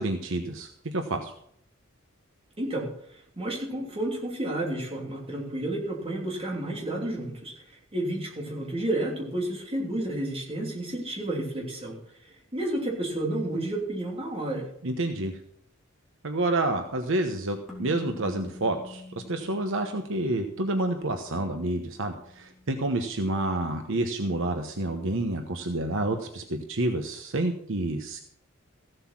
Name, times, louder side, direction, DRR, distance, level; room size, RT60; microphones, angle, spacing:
voice 1, 0.0-1.3 14.8-15.3 16.2-19.0 19.3-28.2, right 2 dB, 65° right, 5 dB, 1.1 m, -29 dB
voice 2, 2.6-2.9 3.4-7.5 7.9-12.0 12.5-14.7, right 1 dB, 30° right, -2 dB, 3.2 m, -31 dB
sound 1, 17.7-24.2, left 2 dB, ahead, 3.4 m, -48 dB
15.5 x 7.9 x 6.0 m, 0.68 s
head